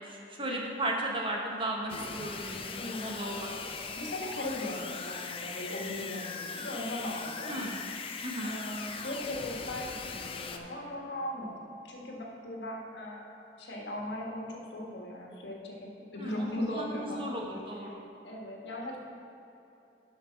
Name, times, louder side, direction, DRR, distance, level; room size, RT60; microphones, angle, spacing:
voice 1, 0.0-3.6 7.5-7.8 8.2-8.5 16.2-18.0, right 1 dB, 30° right, -1 dB, 1.1 m, -36 dB
sound 1, 1.9-10.6, left 5 dB, 30° left, 0.5 m, -40 dB
voice 2, 2.7-3.2 3.9-7.6 8.4-17.4 17.9-19.0, left 1 dB, 85° left, -1 dB, 1.5 m, -38 dB
11.5 x 5.3 x 4.5 m, 2.9 s
head